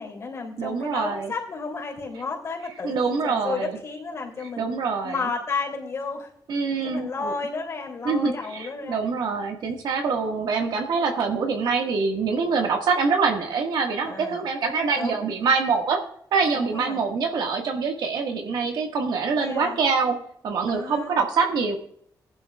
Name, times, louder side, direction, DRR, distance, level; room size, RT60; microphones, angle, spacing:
voice 1, 0.0-4.7 5.0-6.3 6.8-9.0 14.0-15.2 16.5-17.0 19.4-19.8 20.7-21.1, left 4 dB, 40° left, 0 dB, 3.1 m, -32 dB
voice 2, 0.6-1.3 2.8-3.8 4.6-5.2 6.5-7.3 8.1-16.0 16.3-20.2 20.4-21.8, right 5 dB, 80° right, 2 dB, 1.7 m, -25 dB
19.0 x 11.5 x 2.4 m, 0.65 s
wide cardioid pair, 165°, 7 cm